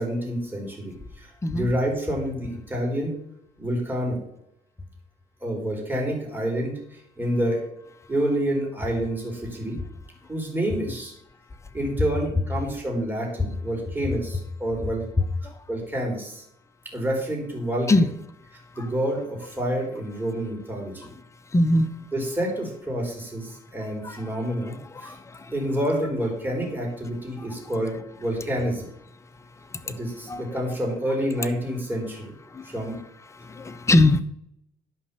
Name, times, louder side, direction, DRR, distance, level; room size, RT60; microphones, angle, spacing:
voice 1, 0.0-3.1 3.6-4.2 5.4-7.6 8.1-9.8 10.3-11.1 11.7-15.1 15.4-16.4 16.9-17.9 18.7-21.0 22.1-25.1 25.5-28.9 29.8-32.3 32.6-33.0, right 1 dB, 10° right, -1 dB, 4.3 m, -28 dB
voice 2, 15.2-15.6 17.9-18.1 18.8-18.9 21.5-21.9 24.0-24.4 24.9-25.5 27.4-27.5 29.6-30.0 30.2-30.6 32.5-32.7 33.3-34.2, left 2 dB, 15° left, 9 dB, 0.9 m, -23 dB
11.0 x 5.3 x 7.0 m, 0.77 s
cardioid pair, 110°, 17 cm